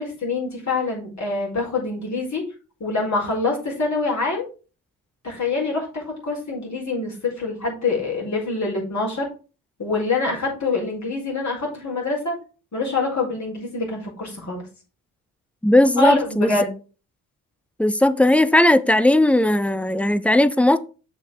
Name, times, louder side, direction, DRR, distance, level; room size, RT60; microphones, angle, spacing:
voice 1, 0.0-2.4 2.8-4.5 5.2-9.3 9.8-12.4 12.7-14.6 16.0-16.7, left 3 dB, 40° left, 4.6 m, -25 dB
voice 2, 15.6-16.5 17.8-20.8, left 1 dB, 5° left, 0.5 m, -17 dB
6.8 x 5.6 x 4.7 m
figure-of-eight pair, 40°, 44 cm